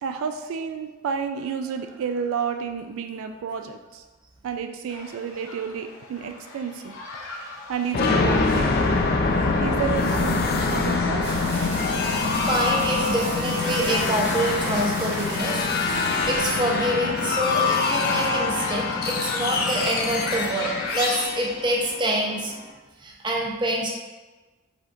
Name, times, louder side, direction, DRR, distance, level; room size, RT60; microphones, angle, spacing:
voice 1, 0.0-4.0 4.4-6.9 7.7-8.7 9.6-11.3, right 6 dB, 80° right, 7 dB, 0.3 m, -30 dB
sound 1, 4.9-21.3, left 2 dB, 85° left, 0.8 m, -38 dB
sound 2, 7.9-22.6, left 3 dB, 50° left, 0.4 m, -25 dB
sound 3, 11.2-16.9, right 2 dB, 50° right, 1.1 m, -38 dB
voice 2, 12.1-22.5 23.0-23.9, right 1 dB, 20° right, -2 dB, 0.7 m, -26 dB
5.1 x 3.5 x 2.5 m, 1.2 s
head